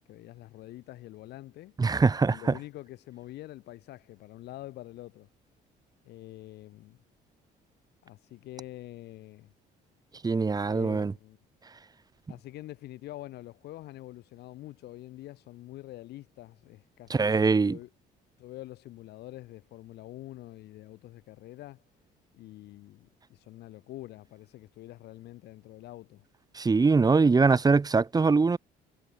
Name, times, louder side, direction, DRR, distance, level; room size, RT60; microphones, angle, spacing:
voice 1, 0.0-1.7 2.3-5.3 6.0-7.0 8.0-9.5 10.7-11.4 12.3-17.9 18.4-21.8 22.3-26.2, left 16 dB, 75° left, 6.1 m, -46 dB
voice 2, 1.8-2.4 10.2-11.1 17.1-17.8 26.5-28.6, right 4 dB, 20° right, 2.3 m, -22 dB
cardioid pair, 110°, 17 cm